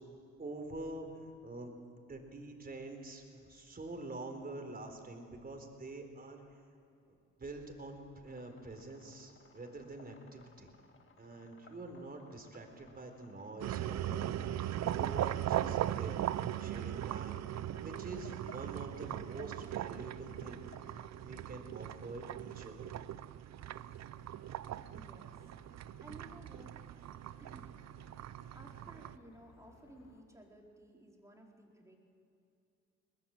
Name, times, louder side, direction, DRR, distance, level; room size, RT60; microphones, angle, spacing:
voice 1, 0.4-1.1 1.4-1.7 2.1-6.4 7.1-10.8 11.2-16.2 16.6-20.6 21.1-23.1, right 2 dB, 30° right, 4 dB, 4.1 m, -46 dB
sound 1, 8.3-21.1, left 4 dB, 40° left, 2.0 m, -61 dB
sound 2, 13.6-29.2, right 12 dB, 60° right, 0.7 m, -39 dB
sound 3, 23.6-30.2, left 5 dB, 60° left, 2.3 m, -65 dB
voice 2, 24.9-25.4 26.0-26.8 27.4-27.7 28.5-32.0, right 1 dB, 10° right, -1 dB, 4.5 m, -56 dB
22.0 x 20.0 x 7.8 m, 2.6 s
cardioid pair, 90°, 30 cm